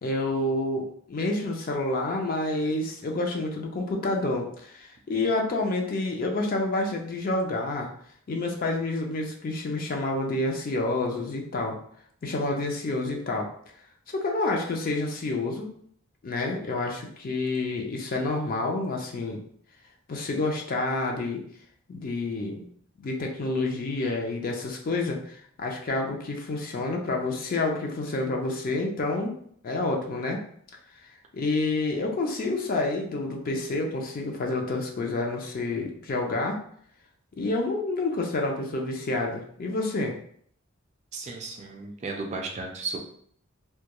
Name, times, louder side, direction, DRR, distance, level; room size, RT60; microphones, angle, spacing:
voice 1, 0.0-0.8 1.1-7.9 8.3-11.8 12.2-13.5 14.1-15.7 16.2-19.4 20.1-21.4 21.9-22.7 23.0-29.3 29.6-30.4 31.3-36.6 37.4-40.1, left 2 dB, 40° left, 1 dB, 0.4 m, -28 dB
voice 2, 41.1-43.0, right 3 dB, 35° right, 2 dB, 0.3 m, -34 dB
2.2 x 2.2 x 2.8 m, 0.63 s
head